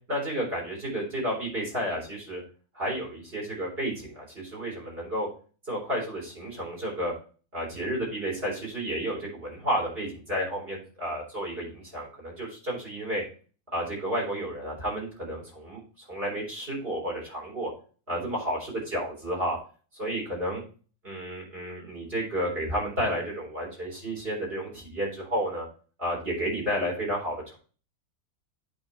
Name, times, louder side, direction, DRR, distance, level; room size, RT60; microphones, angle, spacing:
voice 1, 0.1-2.4 2.7-5.3 5.7-7.1 7.5-13.2 13.7-17.7 18.1-19.6 20.0-20.6 21.0-25.7 26.0-27.6, equal, 40° right, -1 dB, 4.1 m, -31 dB
8.6 x 4.5 x 4.4 m, 0.38 s
omnidirectional pair, 1.5 m